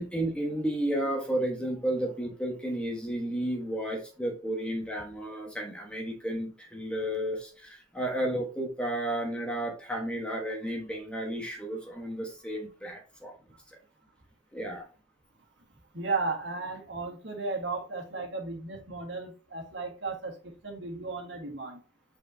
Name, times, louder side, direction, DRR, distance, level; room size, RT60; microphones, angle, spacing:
voice 1, 0.0-13.3 14.5-14.9, right 1 dB, 5° left, 1 dB, 1.3 m, -32 dB
voice 2, 15.9-21.8, right 3 dB, 70° right, 2 dB, 1.7 m, -35 dB
8.4 x 4.3 x 2.8 m, 0.37 s
head